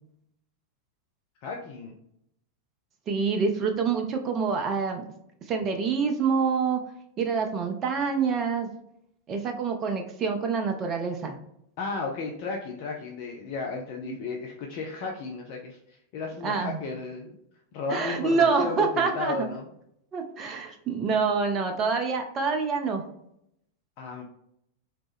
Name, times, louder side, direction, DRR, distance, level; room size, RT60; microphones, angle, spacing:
voice 1, 1.4-1.9 11.8-17.4 17.7-19.7 24.0-24.2, left 4 dB, 45° left, 1 dB, 0.5 m, -34 dB
voice 2, 3.1-5.0 5.5-6.8 7.2-8.7 9.3-11.4 14.0-14.1 16.4-16.8 17.9-19.3 20.1-23.0, right 5 dB, 30° right, 4 dB, 0.4 m, -26 dB
3.0 x 2.9 x 3.4 m, 0.75 s
figure-of-eight pair, 90°, 0 cm